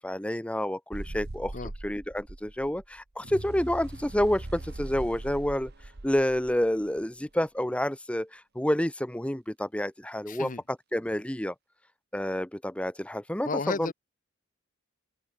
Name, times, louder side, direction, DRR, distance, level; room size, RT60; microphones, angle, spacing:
voice 1, 0.0-1.5 1.8-5.7 6.0-11.5 12.1-13.9, left 1 dB, 5° left, 0.9 m, -29 dB
sound 1, 0.9-7.0, right 2 dB, 50° right, 1.2 m, -40 dB
voice 2, 10.3-10.6 13.4-13.9, left 3 dB, 40° left, 0.9 m, -32 dB
open air
head